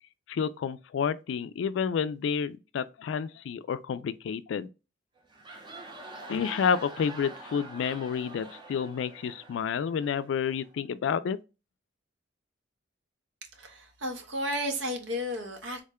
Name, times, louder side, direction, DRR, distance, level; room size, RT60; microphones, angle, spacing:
voice 1, 0.3-4.7 6.3-11.4, left 7 dB, 70° left, 0.3 m, -30 dB
sound 1, 5.2-10.7, right 2 dB, 25° right, 0.6 m, -46 dB
voice 2, 13.6-15.8, equal, 90° right, 0.9 m, -33 dB
3.6 x 2.2 x 3.5 m
head